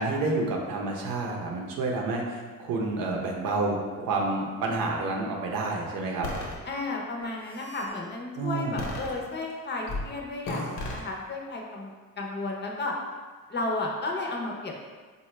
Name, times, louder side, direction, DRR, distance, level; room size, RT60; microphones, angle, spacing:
voice 1, 0.0-6.3 8.3-8.8, right 3 dB, 85° right, -1 dB, 0.7 m, -29 dB
sound 1, 6.2-6.5 7.2-7.9 8.8-9.5 9.9-10.1 10.4-11.0, left 2 dB, 85° left, 0.9 m, -34 dB
voice 2, 6.7-12.9 13.5-14.8, left 2 dB, 35° left, 0 dB, 0.5 m, -33 dB
4.1 x 2.2 x 3.1 m, 1.5 s
cardioid pair, 115°, 33 cm